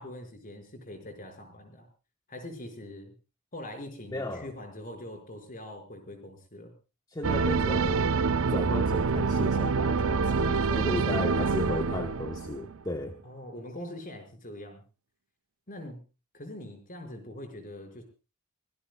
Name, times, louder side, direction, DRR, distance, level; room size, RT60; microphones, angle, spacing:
voice 1, 0.0-1.9 2.3-3.1 3.5-6.7 10.4-12.2 13.2-14.8 15.7-16.0 16.3-18.0, left 1 dB, 40° left, 5 dB, 5.4 m, -42 dB
voice 2, 4.1-4.5 7.1-8.2 8.5-13.2, left 1 dB, 20° left, 5 dB, 1.2 m, -35 dB
sound 1, 7.2-12.8, right 4 dB, 65° right, 0.7 m, -26 dB
24.0 x 18.5 x 2.3 m, 0.34 s
head